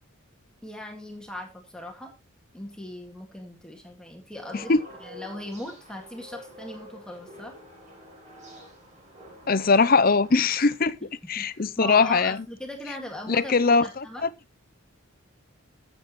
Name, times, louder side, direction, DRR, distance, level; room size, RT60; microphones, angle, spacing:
voice 1, 0.6-2.1 2.5-4.7 5.0-7.5 11.4-14.2, left 1 dB, 5° left, 2.0 m, -39 dB
sound 1, 4.5-10.8, equal, 35° right, 4.4 m, -47 dB
voice 2, 9.5-11.0 11.3-12.4 13.3-14.0, left 4 dB, 40° left, 0.6 m, -21 dB
14.5 x 8.1 x 3.1 m
head